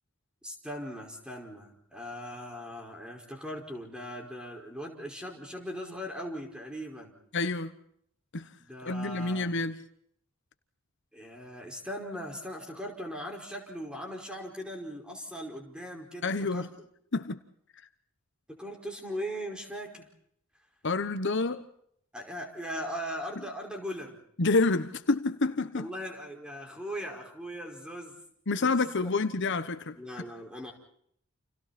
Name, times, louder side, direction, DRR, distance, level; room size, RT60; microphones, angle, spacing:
voice 1, 0.4-7.1 8.6-9.5 11.1-16.9 18.5-20.1 22.1-24.2 25.8-28.2 28.6-29.1 30.0-30.7, equal, 5° right, 5.2 m, -39 dB
voice 2, 7.3-7.7 8.3-8.5 8.8-9.8 16.2-16.7 17.1-17.4 20.8-21.6 24.4-25.9 28.5-30.0, left 3 dB, 60° left, 1.1 m, -28 dB
30.0 x 28.5 x 4.3 m
head